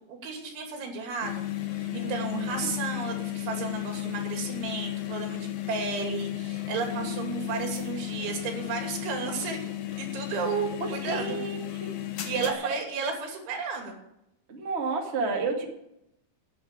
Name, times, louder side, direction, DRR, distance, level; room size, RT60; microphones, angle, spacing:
voice 1, 0.0-1.4 1.7-11.4 12.2-14.0, right 5 dB, 90° right, 3 dB, 5.2 m, -33 dB
sound 1, 1.2-12.5, left 14 dB, 65° left, 2.7 m, -34 dB
voice 2, 1.9-2.7 6.9-8.3 11.0-11.9 12.4-12.8 14.5-15.6, right 4 dB, 60° right, 1 dB, 0.6 m, -33 dB
11.0 x 9.2 x 8.7 m, 0.82 s
omnidirectional pair, 5.3 m